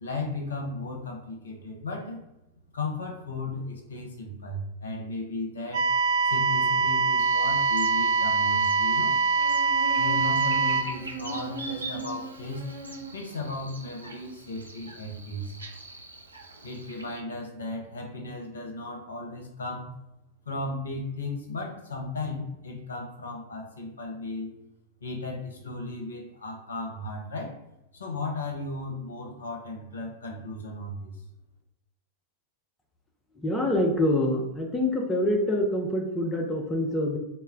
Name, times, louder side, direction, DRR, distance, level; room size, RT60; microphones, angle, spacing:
voice 1, 0.0-2.2 2.7-5.9 6.3-9.2 10.0-12.7 13.1-15.5 16.6-19.9 20.5-24.5 25.0-27.6 27.9-31.1, left 2 dB, 70° left, 1 dB, 0.6 m, -35 dB
sound 1, 5.7-10.8, right 4 dB, 50° right, 0.8 m, -23 dB
Buzz, 7.2-17.2, right 3 dB, 80° right, 0.4 m, -40 dB
voice 2, 33.3-37.2, left 1 dB, 10° left, 1 dB, 0.4 m, -26 dB
2.1 x 2.0 x 3.6 m, 0.90 s
figure-of-eight pair, 90°, 0 cm